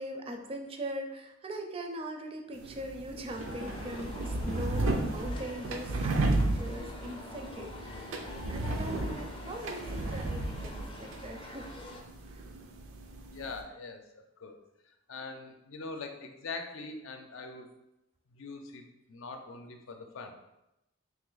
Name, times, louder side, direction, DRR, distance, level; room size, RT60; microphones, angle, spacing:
voice 1, 0.0-8.1 8.5-11.7 12.3-12.4, right 1 dB, 30° right, 4 dB, 0.4 m, -41 dB
sound 1, 2.5-13.6, right 2 dB, 85° right, 0.5 m, -34 dB
sound 2, 3.3-12.0, left 2 dB, 25° left, 0.5 m, -45 dB
voice 2, 13.3-14.6 15.1-17.7 18.3-20.4, left 3 dB, 80° left, 4 dB, 0.5 m, -43 dB
3.2 x 2.8 x 3.9 m, 0.89 s
head